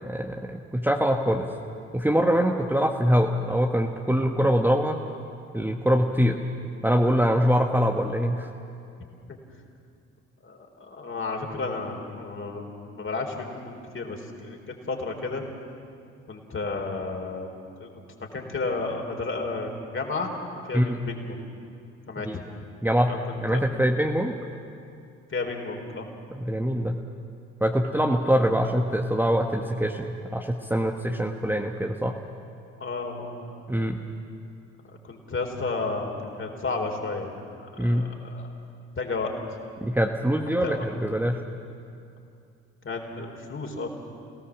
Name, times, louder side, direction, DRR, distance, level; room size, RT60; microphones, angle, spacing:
voice 1, 0.0-1.5 1.9-5.0 5.5-6.4 6.8-8.5 20.7-21.0 22.2-22.4 22.8-24.3 26.3-27.0 27.6-32.1 33.7-34.0 37.8-38.1 39.8-41.4, equal, 5° right, 2 dB, 1.5 m, -24 dB
voice 2, 10.4-14.6 14.9-15.4 16.3-17.5 17.8-17.9 18.3-20.3 20.6-21.4 22.1-22.4 23.1-23.6 25.3-26.1 32.8-33.6 35.0-37.3 37.6-38.5 39.0-39.3 40.5-40.8 42.8-43.9, left 3 dB, 35° left, 2 dB, 4.2 m, -32 dB
28.0 x 17.5 x 7.4 m, 2.5 s
figure-of-eight pair, 50°, 36 cm